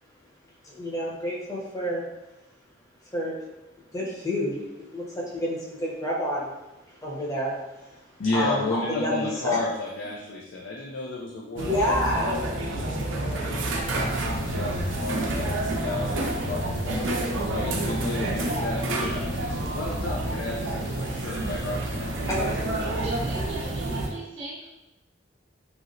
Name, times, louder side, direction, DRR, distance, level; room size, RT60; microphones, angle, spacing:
voice 1, 0.6-2.0 3.1-3.3 3.9-6.5 6.9-8.1 8.3-9.6 11.6-12.3 22.3-22.7, left 1 dB, 20° left, -5 dB, 0.8 m, -29 dB
voice 2, 8.2-17.1 17.4-22.2, left 3 dB, 75° left, -3 dB, 0.4 m, -33 dB
sound 1, 11.6-24.1, right 1 dB, 85° right, 0.5 m, -29 dB
sound 2, 13.8-24.1, equal, 50° left, 0.9 m, -42 dB
voice 3, 23.0-24.7, right 2 dB, 35° right, -8 dB, 0.7 m, -37 dB
3.0 x 2.8 x 2.6 m, 0.97 s
head